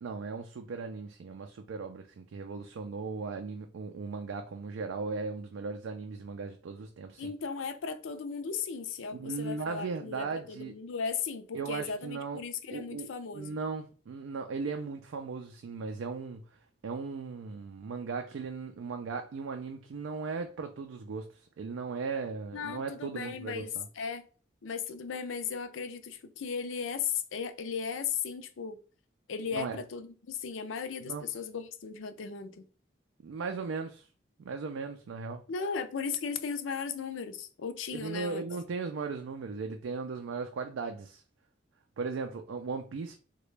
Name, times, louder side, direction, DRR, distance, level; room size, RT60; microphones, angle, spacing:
voice 1, 0.0-7.3 9.1-10.8 11.5-12.4 12.7-23.9 29.5-29.8 31.0-31.3 33.2-34.1 34.4-35.4 37.9-41.2 42.0-43.2, right 4 dB, 90° right, 0.4 m, -37 dB
voice 2, 7.2-13.6 22.5-24.2 24.6-28.8 29.3-32.6 35.5-38.4, left 6 dB, 85° left, 0.5 m, -36 dB
3.8 x 2.2 x 3.2 m
head